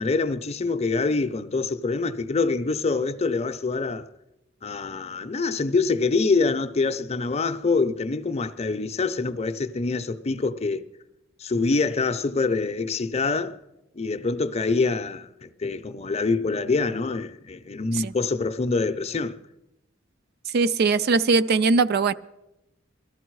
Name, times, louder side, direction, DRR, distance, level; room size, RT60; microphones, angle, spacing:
voice 1, 0.0-4.1 4.6-10.8 11.4-13.6 13.9-19.4, left 3 dB, 30° left, 0.6 m, -25 dB
voice 2, 20.5-22.1, right 4 dB, 50° right, 0.4 m, -20 dB
19.5 x 13.5 x 4.7 m
head